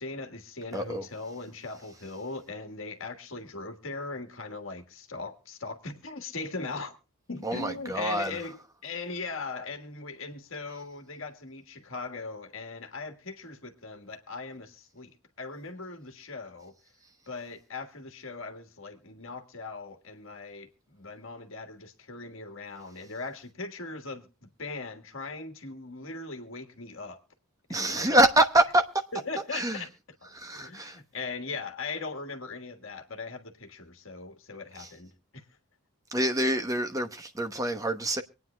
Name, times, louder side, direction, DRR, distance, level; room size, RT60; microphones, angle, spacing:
voice 1, 0.0-6.9 7.3-15.1 15.4-16.7 17.3-27.2 27.7-28.1 29.1-29.9 30.2-35.4, left 3 dB, 60° left, 1.5 m, -39 dB
voice 2, 0.7-1.0 7.4-8.3 27.7-28.9 29.5-29.8 30.3-31.0 34.8-34.9 36.1-38.2, right 1 dB, 15° right, 1.0 m, -25 dB
25.0 x 9.4 x 2.2 m
head